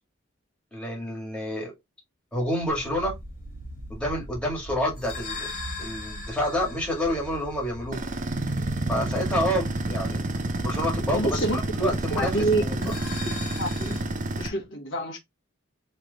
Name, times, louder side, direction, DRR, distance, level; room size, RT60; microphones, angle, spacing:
voice 1, 0.7-1.7 2.3-3.2 3.9-5.5 5.8-8.0 8.9-10.2 10.6-12.3 12.6-12.9, equal, 5° left, 1.8 m, -28 dB
sound 1, 2.3-9.0 12.7-14.0, left 4 dB, 45° left, 1.3 m, -41 dB
sound 2, 2.7-12.4, equal, 85° right, 0.9 m, -42 dB
sound 3, 7.9-14.5, right 2 dB, 40° right, 0.6 m, -29 dB
voice 2, 11.1-11.6 11.8-12.9 13.2-14.0 14.3-15.2, right 2 dB, 65° left, 1.4 m, -28 dB
3.3 x 3.2 x 3.9 m
head